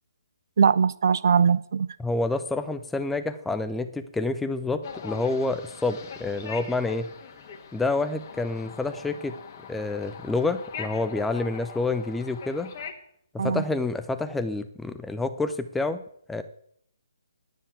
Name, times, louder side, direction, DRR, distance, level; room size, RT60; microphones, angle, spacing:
voice 1, 0.6-1.9 13.4-13.6, right 6 dB, 55° right, 17 dB, 0.4 m, -21 dB
voice 2, 2.0-7.1 7.7-9.3 9.7-12.7 13.3-16.0 16.3-16.4, left 3 dB, 5° left, 9 dB, 0.7 m, -28 dB
sound 1, 4.8-12.9, left 6 dB, 35° left, 1.5 m, -42 dB
10.0 x 7.1 x 8.2 m, 0.69 s
figure-of-eight pair, 140°, 2 cm